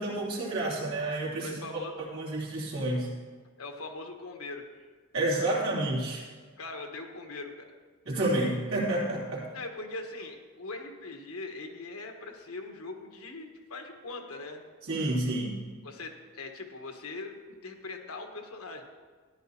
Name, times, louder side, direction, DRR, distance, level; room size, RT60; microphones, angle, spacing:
voice 1, 0.0-1.6 2.1-3.1 5.1-6.2 8.0-9.4 14.8-15.6, right 1 dB, 85° right, -5 dB, 3.0 m, -29 dB
voice 2, 1.4-1.9 3.6-4.8 5.2-5.6 6.6-7.7 9.5-14.6 15.8-17.4 17.6-18.8, left 3 dB, 85° left, 3 dB, 1.3 m, -41 dB
14.0 x 11.0 x 2.8 m, 1.5 s
head